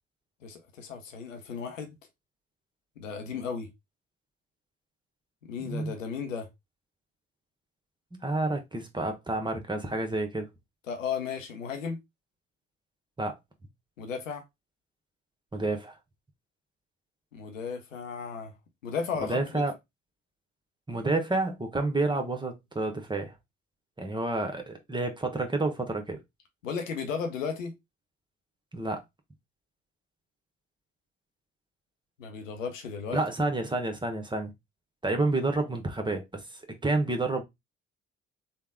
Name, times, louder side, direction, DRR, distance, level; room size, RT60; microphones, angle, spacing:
voice 1, 0.4-1.9 3.0-3.7 5.4-6.5 10.9-12.0 14.0-14.4 17.3-18.5 18.8-19.6 26.6-27.7 32.2-33.2, left 6 dB, 85° left, 0.6 m, -35 dB
voice 2, 8.2-10.5 13.2-13.3 15.5-16.0 19.2-19.7 20.9-23.3 24.0-26.2 28.7-29.0 33.1-34.5 35.0-37.4, right 2 dB, 10° right, 0.8 m, -29 dB
3.4 x 2.1 x 3.4 m
figure-of-eight pair, 45°, 37 cm